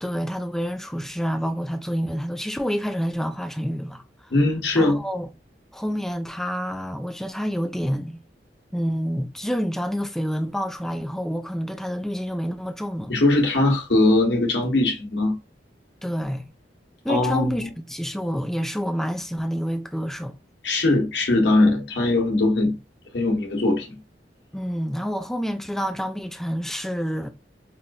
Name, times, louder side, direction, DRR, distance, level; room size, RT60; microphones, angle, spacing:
voice 1, 0.0-4.3 4.7-5.3 5.7-8.2 8.7-13.1 16.0-16.5 17.0-20.3 24.5-27.3, equal, ahead, 0.3 m, -28 dB
voice 2, 4.3-5.0 13.1-15.3 17.1-17.7 20.6-22.7 23.1-24.0, left 2 dB, 80° left, 1.1 m, -20 dB
5.5 x 2.5 x 2.3 m
head